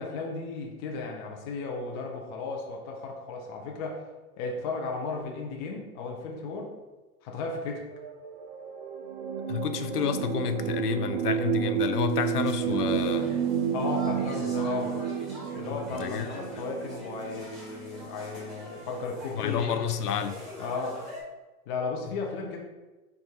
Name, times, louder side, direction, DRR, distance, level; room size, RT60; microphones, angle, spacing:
voice 1, 0.0-4.0 4.4-6.8 7.2-7.8 13.7-15.0 15.5-19.7 20.6-21.0 21.7-22.6, left 4 dB, 20° left, 1 dB, 0.4 m, -35 dB
sound 1, 7.9-18.6 19.5-19.6, right 9 dB, 40° right, 0.4 m, -31 dB
voice 2, 9.5-13.4 15.7-16.3 19.4-20.4, left 8 dB, 85° left, 9 dB, 0.6 m, -30 dB
sound 2, 12.1-21.2, equal, ahead, 1.5 m, -45 dB
4.6 x 2.5 x 4.0 m, 1.1 s
hypercardioid pair, 115°, 46 cm